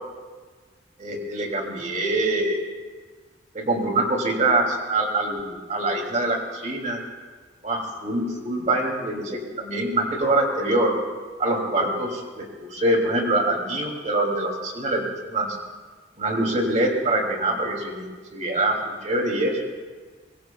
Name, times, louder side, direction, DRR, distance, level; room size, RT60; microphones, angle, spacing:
voice 1, 1.0-2.6 3.5-7.0 7.6-10.9 11.4-15.5 16.2-19.6, right 2 dB, 40° right, 1 dB, 2.7 m, -24 dB
25.0 x 22.0 x 2.3 m, 1.4 s
head